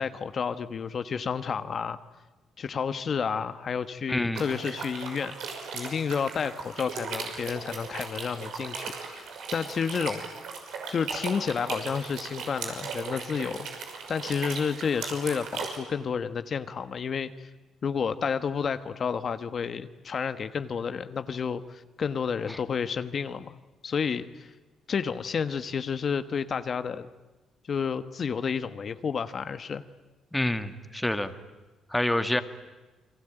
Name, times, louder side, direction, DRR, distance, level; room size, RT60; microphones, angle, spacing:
voice 1, 0.0-2.0 2.6-5.4 5.7-10.2 10.9-13.7 14.1-17.5 17.8-23.5 23.8-24.5 24.9-27.1 27.7-29.8, left 6 dB, 50° left, 11 dB, 1.2 m, -30 dB
voice 2, 4.1-4.4 22.5-22.6 30.3-31.3 31.9-32.4, left 1 dB, 10° left, 9 dB, 1.9 m, -27 dB
sound 1, 4.4-15.8, right 5 dB, 80° right, 6.0 m, -37 dB
29.5 x 22.5 x 9.1 m, 1.2 s
cardioid pair, 90°, 0 cm